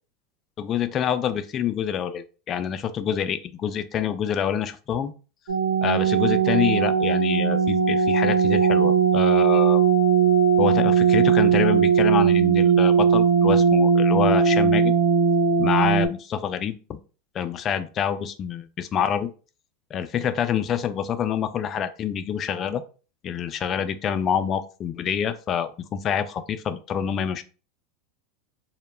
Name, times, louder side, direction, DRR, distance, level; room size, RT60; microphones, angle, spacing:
voice 1, 0.6-5.1 5.8-9.8 10.6-14.9 15.6-17.0 17.3-19.3 19.9-22.8 23.2-27.4, left 8 dB, 35° left, 10 dB, 0.3 m, -26 dB
sound 1, 5.5-16.1, right 6 dB, 80° right, 0.8 m, -19 dB
2.1 x 2.0 x 3.1 m, 0.35 s
hypercardioid pair, 110°, 0 cm